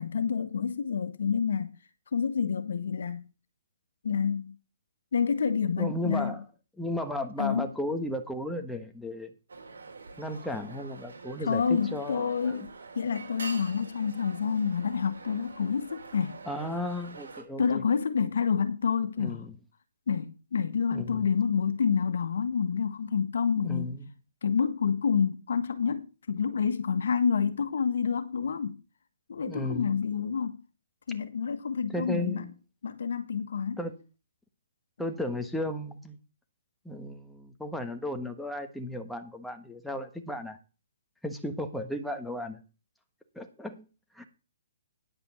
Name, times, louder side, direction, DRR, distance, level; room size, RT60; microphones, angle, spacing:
voice 1, 0.0-1.8 2.1-3.2 4.0-4.6 5.1-6.3 7.4-7.7 11.4-12.7 12.9-16.4 17.6-19.4 20.1-24.0 24.4-28.8 29.3-30.6 31.1-32.4 32.8-33.8, left 6 dB, 70° left, 1.4 m, -28 dB
voice 2, 5.8-6.4 6.8-9.3 10.2-12.5 16.5-17.8 19.2-19.5 20.9-21.3 23.6-24.1 29.5-29.9 31.9-32.5 33.8-33.9 35.0-36.2 36.8-40.6 41.2-42.6 43.3-43.8 44.1-44.2, left 1 dB, ahead, 1.2 m, -34 dB
sound 1, 9.5-17.4, right 4 dB, 85° right, 3.8 m, -45 dB
10.0 x 5.2 x 7.1 m
hypercardioid pair, 155°, 0 cm